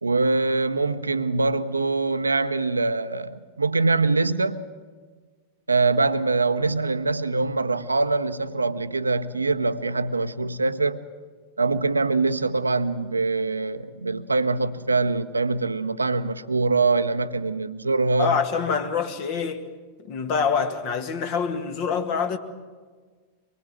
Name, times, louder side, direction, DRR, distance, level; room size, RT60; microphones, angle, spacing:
voice 1, 0.0-4.6 5.7-11.0 11.6-18.3, right 3 dB, 80° right, 0.9 m, -23 dB
voice 2, 18.2-19.6 20.1-22.4, left 6 dB, 45° left, 2.0 m, -25 dB
24.5 x 22.0 x 7.6 m
figure-of-eight pair, 90°, 0 cm